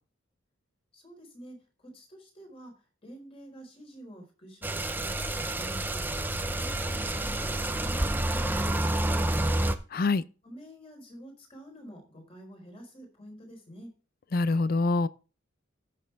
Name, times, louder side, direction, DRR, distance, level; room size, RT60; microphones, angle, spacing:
voice 1, 0.9-2.7 3.0-6.1 6.6-9.5 10.4-13.9, equal, 30° left, 4.3 m, -48 dB
sound 1, 4.6-9.7, right 1 dB, 10° right, 0.6 m, -29 dB
voice 2, 9.9-10.2 14.3-15.1, left 3 dB, 50° left, 0.5 m, -25 dB
14.0 x 6.6 x 3.5 m
head